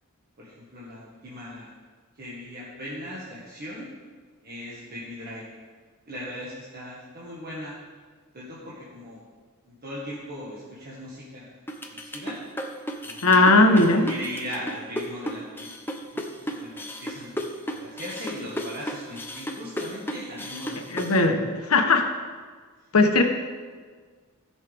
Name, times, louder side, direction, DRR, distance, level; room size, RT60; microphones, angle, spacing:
voice 1, 0.4-1.7 2.2-3.9 4.4-5.6 6.1-7.7 8.3-9.2 9.7-11.5 11.9-12.4 13.0-13.6 14.1-15.7 16.1-21.1, equal, 45° right, -7 dB, 1.7 m, -39 dB
sound 1, 11.7-21.2, equal, 10° left, 0.8 m, -33 dB
voice 2, 13.2-14.1 20.9-22.0 22.9-23.2, left 2 dB, 85° left, 4 dB, 1.2 m, -18 dB
16.0 x 6.4 x 3.6 m, 1.5 s
head